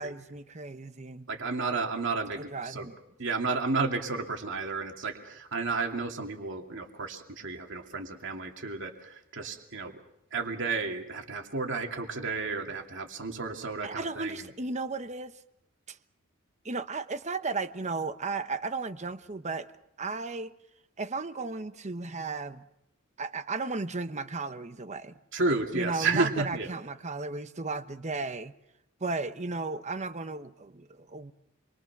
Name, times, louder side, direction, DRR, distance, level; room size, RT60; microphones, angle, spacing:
voice 1, 0.0-1.3 2.4-3.0 13.8-15.4 15.9-16.0 16.6-19.7 20.0-20.5 21.0-22.6 23.2-25.2 25.7-28.5 29.0-31.3, right 3 dB, 35° right, 10 dB, 1.0 m, -35 dB
voice 2, 1.3-2.9 3.2-10.0 10.3-14.5 25.3-26.7, right 3 dB, 60° right, 2 dB, 2.7 m, -32 dB
28.0 x 23.0 x 6.1 m, 0.81 s
head